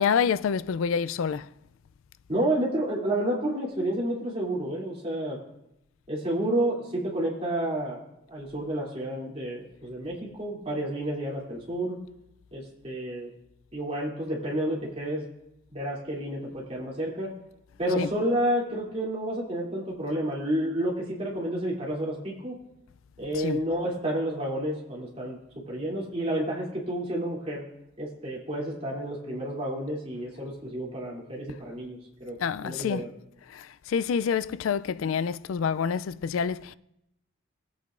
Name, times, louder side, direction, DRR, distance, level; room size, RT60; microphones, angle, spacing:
voice 1, 0.0-1.5 18.0-18.1 23.4-23.6 32.4-33.0 33.5-36.7, left 6 dB, 85° left, 0.4 m, -27 dB
voice 2, 2.3-5.4 6.1-8.0 8.3-12.0 12.5-13.3 13.7-15.2 15.7-17.3 17.8-22.6 23.2-25.4 25.7-27.6 28.0-33.1, right 1 dB, 30° right, 2.8 m, -30 dB
20.0 x 8.4 x 2.5 m
head